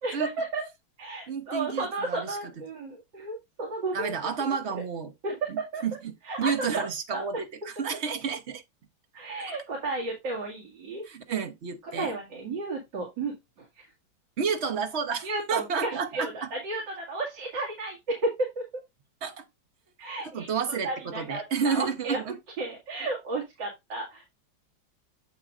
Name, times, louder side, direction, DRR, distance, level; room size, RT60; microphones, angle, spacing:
voice 1, 0.0-0.7 1.0-4.1 4.7-4.8 5.2-5.8 6.2-6.9 7.1-7.2 9.1-11.0 12.0-13.9 15.2-18.8 20.0-20.5 20.8-22.2 22.6-24.3, right 2 dB, 65° right, 2.8 m, -33 dB
voice 2, 1.3-2.4 3.9-5.1 5.5-6.1 6.4-8.6 11.1-12.1 14.4-16.5 19.2-19.4 20.2-22.3, right 6 dB, 45° right, 1.0 m, -31 dB
7.7 x 7.2 x 2.5 m
omnidirectional pair, 2.1 m